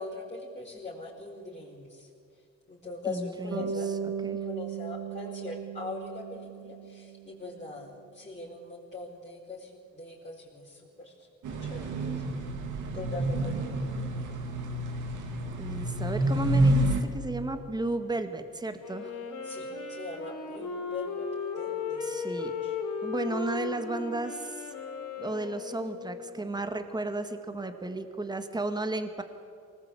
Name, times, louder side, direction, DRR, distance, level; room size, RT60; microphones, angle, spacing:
voice 1, 0.0-2.1 2.7-3.9 4.4-11.1 11.6-12.2 12.9-13.9 19.4-21.3 21.6-22.2 22.6-22.7, left 3 dB, 20° left, -5 dB, 5.2 m, -41 dB
voice 2, 3.1-4.0 4.2-4.4 15.6-19.2 22.0-22.5 23.0-24.7 25.2-29.2, right 2 dB, 15° right, 7 dB, 2.0 m, -34 dB
Bass guitar, 3.5-7.6, right 7 dB, 65° right, 3.7 m, -37 dB
sound 1, 11.4-17.0, right 1 dB, 80° right, 3.0 m, -28 dB
Wind instrument woodwind instrument, 18.8-26.5, left 5 dB, 85° left, 4.1 m, -36 dB
24.0 x 20.0 x 8.5 m, 2.4 s
cardioid pair, 90°, 30 cm